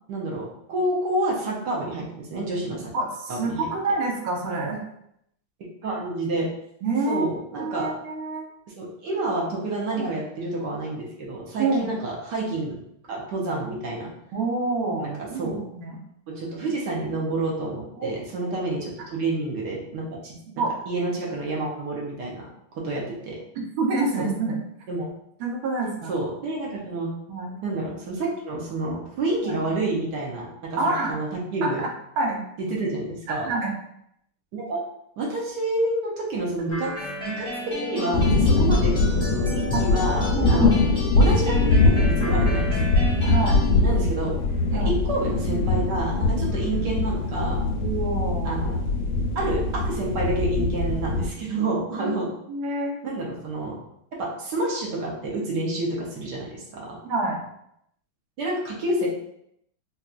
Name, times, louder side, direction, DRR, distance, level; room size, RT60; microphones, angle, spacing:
voice 1, 0.1-2.9 3.3-3.7 5.8-6.5 7.1-7.9 8.8-12.8 13.1-14.1 15.0-15.6 16.3-20.4 20.9-23.4 24.2-24.3 24.9-25.0 26.1-27.1 27.6-30.8 31.1-31.8 32.6-33.5 34.5-34.8 35.2-36.9 37.4-37.5 37.8-40.7 41.2-42.9 43.8-44.3 44.7-47.6 48.4-48.8 49.3-52.3 53.0-53.8 54.2-57.0 58.4-59.1, right 2 dB, 65° right, -3 dB, 1.3 m, -29 dB
voice 2, 2.9-4.8 6.8-7.3 7.6-8.5 10.0-10.1 11.6-11.9 14.3-16.0 18.0-18.1 20.5-20.8 23.6-24.6 25.4-26.1 27.3-27.5 29.4-29.6 30.8-31.2 31.6-31.9 32.2-32.4 33.3-33.7 38.5-38.6 39.7-39.9 40.3-40.8 43.2-43.6 44.7-44.9 47.7-48.6 52.0-52.2 52.5-53.0 57.0-57.4, right 3 dB, 80° right, 0 dB, 1.6 m, -27 dB
sound 1, 36.7-43.7, left 2 dB, 5° left, 0.7 m, -33 dB
sound 2, 38.1-51.3, left 3 dB, 90° left, 1.4 m, -22 dB
4.2 x 2.3 x 2.4 m, 0.75 s
omnidirectional pair, 2.2 m